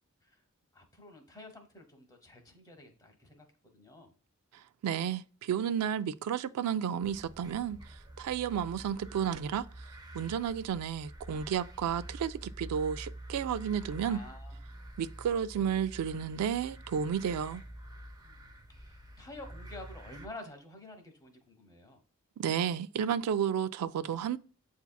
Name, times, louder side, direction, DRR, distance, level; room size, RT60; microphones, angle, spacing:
voice 1, 0.7-3.5 3.7-4.1 14.1-14.6 15.6-15.7 18.3-18.5 18.8-22.0, left 2 dB, 15° left, 0.9 m, -50 dB
voice 2, 4.5-9.7 10.1-14.2 15.0-17.6 22.4-24.4, right 8 dB, 85° right, 0.3 m, -32 dB
sound 1, 7.0-20.3, right 1 dB, 20° right, 0.5 m, -47 dB
8.1 x 2.8 x 2.2 m
head